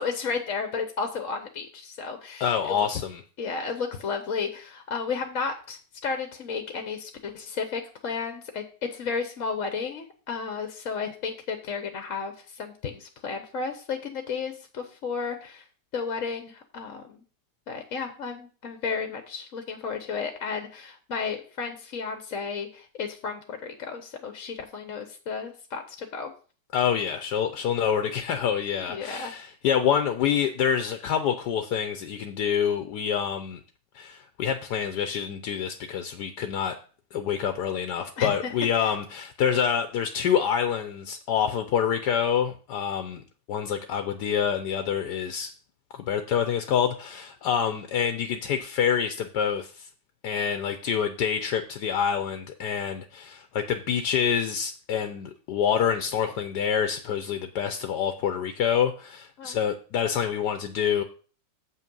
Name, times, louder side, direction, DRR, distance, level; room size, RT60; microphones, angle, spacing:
voice 1, 0.0-2.9 3.4-15.6 15.9-17.2 17.7-26.3 28.9-29.3 38.2-38.5 38.8-38.9 59.4-59.6, left 5 dB, 55° left, 7 dB, 1.2 m, -33 dB
voice 2, 2.4-3.2 26.7-33.6 33.9-36.7 37.1-43.2 43.5-45.5 46.0-49.9 50.2-61.0, left 8 dB, 75° left, 8 dB, 1.3 m, -27 dB
7.8 x 5.7 x 5.3 m, 0.39 s
omnidirectional pair, 1.9 m